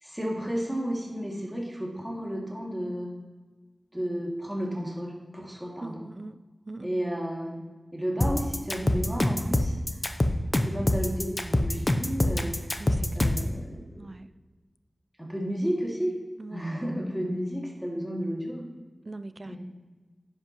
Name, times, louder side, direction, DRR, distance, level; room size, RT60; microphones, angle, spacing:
voice 1, 0.0-3.1 3.9-6.1 6.8-7.6 7.9-9.8 10.6-12.6 13.1-14.1 15.2-16.1 16.5-18.7 19.4-19.6, equal, 5° right, -2 dB, 2.3 m, -32 dB
voice 2, 5.8-6.4 6.7-6.9 12.8-13.4 14.0-14.3 16.4-17.0 19.1-19.6, right 2 dB, 45° right, 13 dB, 0.4 m, -42 dB
sound 1, 8.2-13.5, left 1 dB, 35° left, 0.7 m, -25 dB
10.5 x 8.1 x 3.0 m, 1.3 s
wide cardioid pair, 65°, 0 cm